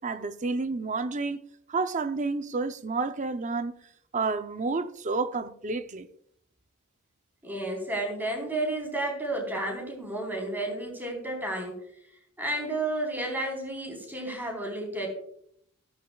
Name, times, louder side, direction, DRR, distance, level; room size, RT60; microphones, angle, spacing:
voice 1, 0.0-1.4 1.7-3.7 4.1-6.1, right 3 dB, 35° right, 0.6 m, -30 dB
voice 2, 7.4-11.8 12.4-15.1, right 1 dB, 10° right, 3.9 m, -31 dB
14.0 x 13.5 x 2.3 m
head